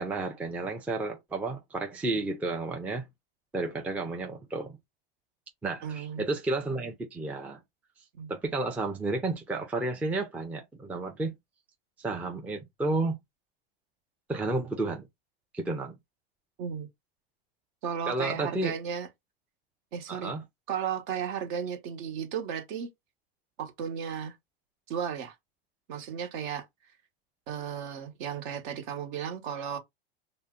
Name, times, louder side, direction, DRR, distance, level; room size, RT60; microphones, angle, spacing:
voice 1, 0.0-3.1 3.5-4.8 5.6-7.6 8.3-11.3 12.0-13.2 14.3-15.1 15.5-15.9 18.1-18.7 20.1-20.4, right 2 dB, 5° right, 0.4 m, -31 dB
voice 2, 5.8-6.3 8.1-8.3 16.6-16.9 17.8-19.1 19.9-20.4 20.7-22.9 23.6-24.4 24.9-25.4 25.9-26.7 27.5-29.8, right 8 dB, 60° right, 0.9 m, -34 dB
2.6 x 2.1 x 3.5 m
hypercardioid pair, 120°, 30 cm